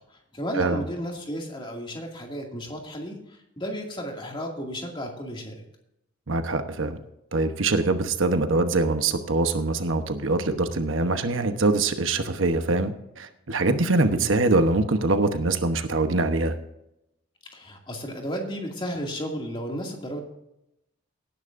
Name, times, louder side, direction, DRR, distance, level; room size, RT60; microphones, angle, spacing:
voice 1, 0.3-3.2 3.6-5.5 14.0-14.3 17.5-20.2, equal, 25° left, 1 dB, 2.4 m, -33 dB
voice 2, 6.3-7.0 7.3-16.5, right 2 dB, 70° right, 8 dB, 1.0 m, -23 dB
18.0 x 10.5 x 2.6 m, 0.84 s
head